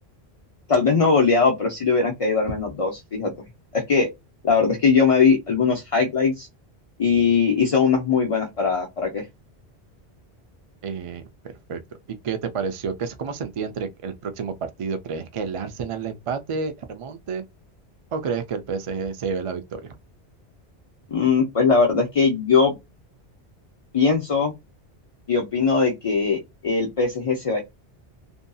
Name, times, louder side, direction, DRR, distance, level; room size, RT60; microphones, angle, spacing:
voice 1, 0.7-3.3 3.7-4.1 4.4-6.5 7.0-9.3 21.1-22.7 23.9-24.5 25.3-27.6, left 5 dB, 40° left, 0.5 m, -20 dB
voice 2, 10.8-11.8 12.1-17.4 18.1-20.0, right 5 dB, 55° right, 0.3 m, -30 dB
2.6 x 2.6 x 2.2 m
omnidirectional pair, 1.1 m